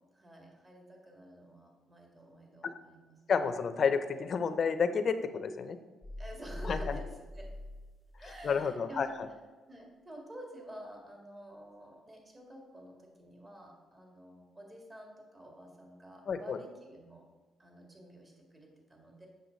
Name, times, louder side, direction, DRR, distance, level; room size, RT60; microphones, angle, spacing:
voice 1, 0.0-3.5 6.2-7.1 7.3-7.5 8.2-9.1 9.7-17.2 17.6-19.3, right 1 dB, 25° right, 0 dB, 2.2 m, -50 dB
voice 2, 3.3-5.8 6.7-6.8 8.4-9.1 16.3-16.6, left 6 dB, 50° left, 10 dB, 0.6 m, -30 dB
sound 1, 6.0-8.7, left 2 dB, 10° left, 0.4 m, -42 dB
7.9 x 6.6 x 4.0 m, 1.3 s
cardioid pair, 90°, 0 cm